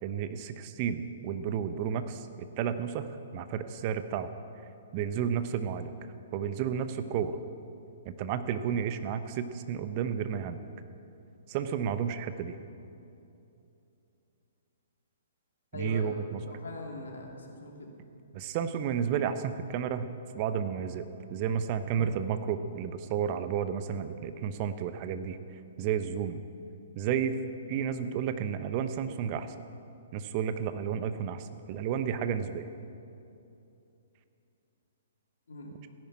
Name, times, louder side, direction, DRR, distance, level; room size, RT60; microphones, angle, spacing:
voice 1, 0.0-2.3 2.6-4.3 4.9-5.9 6.3-7.4 8.0-10.6 11.5-12.6 15.7-16.4 18.3-20.1 20.3-25.4 25.8-26.4 27.0-27.4 27.7-29.5 30.1-32.7, right 8 dB, 35° right, 10 dB, 0.9 m, -32 dB
voice 2, 15.7-16.2 16.4-17.9 35.5-35.7, left 2 dB, 65° left, 0 dB, 3.2 m, -41 dB
15.5 x 10.5 x 8.8 m, 2.7 s
figure-of-eight pair, 120°, 0 cm